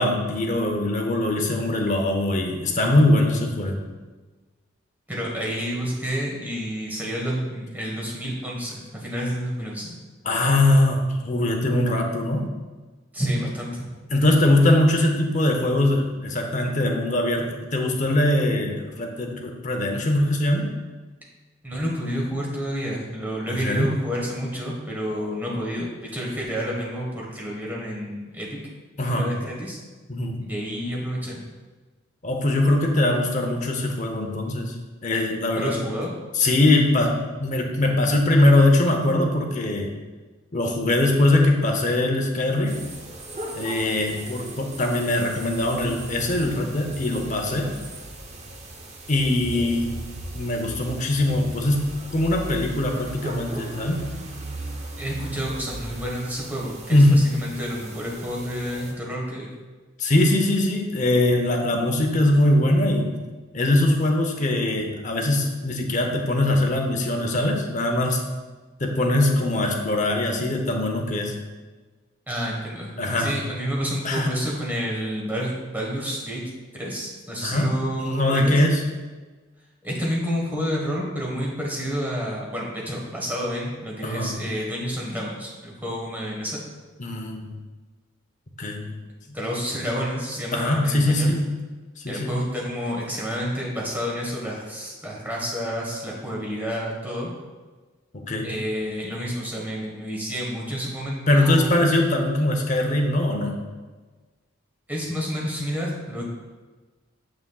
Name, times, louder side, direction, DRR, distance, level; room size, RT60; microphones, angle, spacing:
voice 1, 0.0-3.9 10.2-12.5 14.1-20.7 23.5-24.0 29.0-29.3 30.1-30.5 32.2-34.7 35.0-35.8 36.3-40.0 40.5-42.8 43.5-47.8 49.1-49.9 50.3-54.0 56.9-57.2 60.0-63.2 63.5-68.2 68.8-71.4 73.0-73.3 74.0-74.3 77.4-78.8 84.0-84.4 87.0-87.6 88.6-89.0 90.5-91.5 92.0-92.4 98.1-98.5 101.3-103.6, left 1 dB, 40° left, 2 dB, 0.7 m, -22 dB
voice 2, 5.1-9.9 13.1-13.9 21.6-28.6 29.1-29.8 30.4-31.5 35.6-36.1 55.0-59.5 72.3-76.4 76.7-78.6 79.8-86.6 89.3-91.4 92.1-97.3 98.4-101.7 104.9-106.3, equal, 10° right, -3 dB, 1.3 m, -29 dB
sound 1, 42.6-58.9, right 1 dB, 35° right, 0.7 m, -38 dB
7.3 x 6.1 x 2.3 m, 1.3 s
head